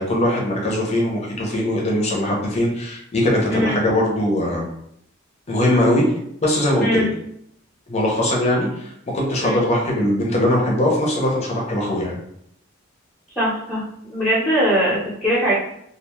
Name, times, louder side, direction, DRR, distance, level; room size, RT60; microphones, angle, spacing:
voice 1, 0.0-4.7 5.5-6.0 6.4-7.0 7.9-12.2, left 1 dB, 30° left, -2 dB, 0.6 m, -21 dB
voice 2, 13.3-13.8 14.1-15.5, equal, 5° left, -9 dB, 0.8 m, -20 dB
2.4 x 2.3 x 3.0 m, 0.72 s
head